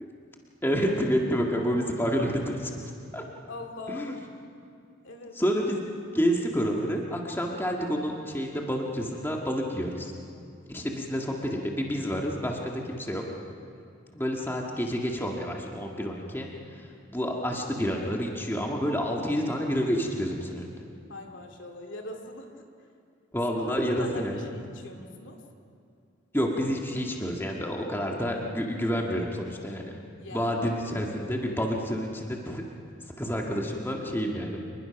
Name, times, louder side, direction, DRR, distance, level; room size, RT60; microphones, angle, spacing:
voice 1, 0.6-2.7 3.1-3.2 3.9-4.2 5.3-5.8 6.1-10.1 10.7-13.3 14.1-20.8 23.3-24.4 26.3-29.9 30.3-32.6 33.2-34.6, equal, 10° left, 0 dB, 1.8 m, -29 dB
voice 2, 3.5-4.2 5.0-5.4 10.8-11.0 21.1-22.6 23.7-25.4 30.2-30.5, left 2 dB, 70° left, 3 dB, 2.4 m, -41 dB
27.0 x 21.0 x 5.9 m, 2.4 s
head